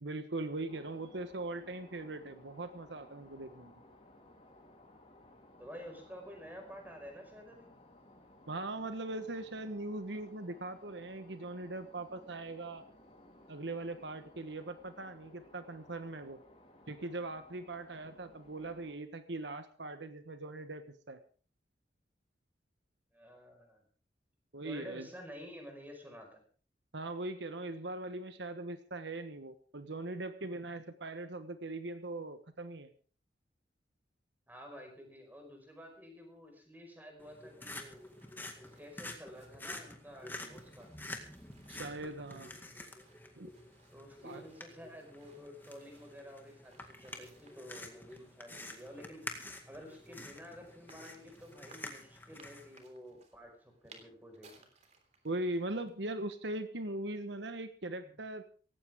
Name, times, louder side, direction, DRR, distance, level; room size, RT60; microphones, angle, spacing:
voice 1, 0.0-3.7 8.5-12.8 13.5-16.4 16.9-21.2 24.5-25.1 26.9-32.9 41.7-42.5 43.4-43.5 44.2-44.4 55.2-58.4, right 2 dB, 75° right, 9 dB, 1.3 m, -40 dB
sound 1, 0.7-19.0, left 1 dB, 30° left, 3.7 m, -59 dB
voice 2, 5.6-7.7 23.1-23.8 24.6-26.4 34.5-38.0 38.8-40.9 43.9-49.4 49.7-54.5 58.0-58.1, equal, 10° right, 3 dB, 5.2 m, -50 dB
sound 2, 37.2-52.8, left 2 dB, 10° left, 2.1 m, -48 dB
sound 3, 37.5-56.1, right 4 dB, 40° right, 3.3 m, -65 dB
18.0 x 16.0 x 3.7 m, 0.40 s
head